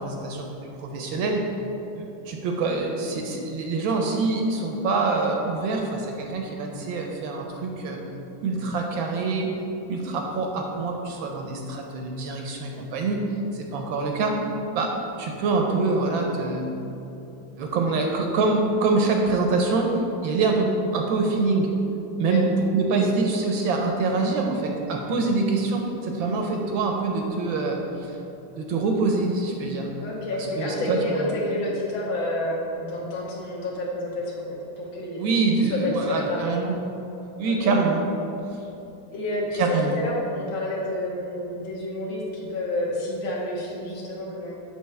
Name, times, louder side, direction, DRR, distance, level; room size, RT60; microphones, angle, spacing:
voice 1, 0.0-1.4 2.0-8.0 8.4-9.5 9.9-13.2 13.5-14.5 14.7-14.9 15.2-16.7 17.6-21.7 22.2-22.5 22.7-28.2 28.6-29.9 30.6-31.3 35.2-36.8 37.4-38.0 39.5-40.0, right 3 dB, 75° right, 2 dB, 1.3 m, -25 dB
voice 2, 30.0-36.5 37.4-37.8 39.1-44.5, left 1 dB, 70° left, -3 dB, 1.8 m, -29 dB
6.9 x 5.9 x 3.2 m, 2.9 s
omnidirectional pair, 2.4 m